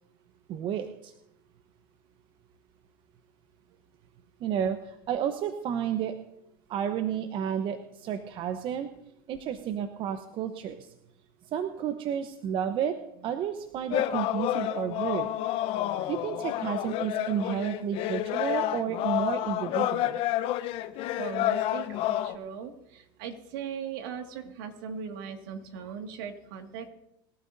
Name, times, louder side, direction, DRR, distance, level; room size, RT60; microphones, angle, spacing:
voice 1, 0.5-1.1 4.4-6.2 6.7-8.9 9.3-10.9 11.5-15.3 16.1-20.2, right 9 dB, 45° right, 8 dB, 1.0 m, -31 dB
sound 1, 13.9-22.3, left 13 dB, 55° left, 0.9 m, -29 dB
voice 2, 21.2-26.9, right 7 dB, 70° right, 5 dB, 2.1 m, -39 dB
24.5 x 12.5 x 2.7 m, 0.81 s
hypercardioid pair, 95°, 12 cm